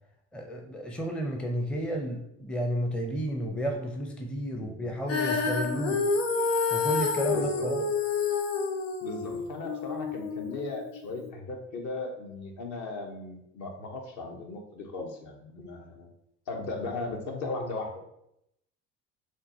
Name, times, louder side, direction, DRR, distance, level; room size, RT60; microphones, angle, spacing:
voice 1, 0.3-6.0 6.7-7.8, equal, 5° left, 2 dB, 0.5 m, -32 dB
voice 2, 4.5-5.0 7.2-7.9 9.0-16.1 16.5-18.0, left 3 dB, 50° left, 2 dB, 0.9 m, -37 dB
Female singing, 5.1-11.3, left 4 dB, 90° left, 0.6 m, -29 dB
6.2 x 2.3 x 2.7 m, 0.80 s
hypercardioid pair, 65°, 37 cm